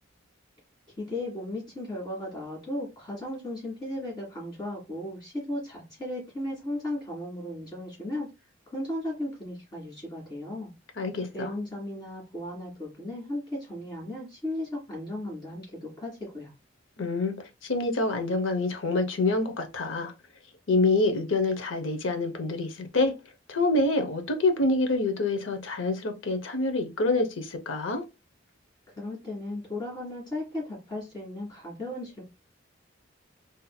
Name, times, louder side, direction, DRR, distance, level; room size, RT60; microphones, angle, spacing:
voice 1, 1.0-8.3 8.7-10.7 11.3-16.5 28.9-32.2, left 1 dB, 20° left, 2.2 m, -36 dB
voice 2, 11.0-11.5 17.0-17.3 17.6-20.1 20.7-23.1 23.5-28.0, left 2 dB, 80° left, 0.7 m, -26 dB
4.1 x 2.7 x 2.3 m
head